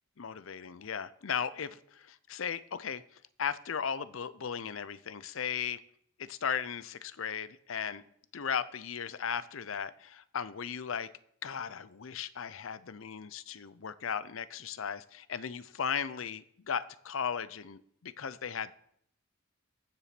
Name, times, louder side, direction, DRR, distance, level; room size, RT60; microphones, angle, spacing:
voice 1, 0.2-5.8 6.2-8.0 8.3-11.1 11.4-18.7, left 7 dB, 75° left, 0.6 m, -36 dB
14.5 x 7.0 x 6.0 m
head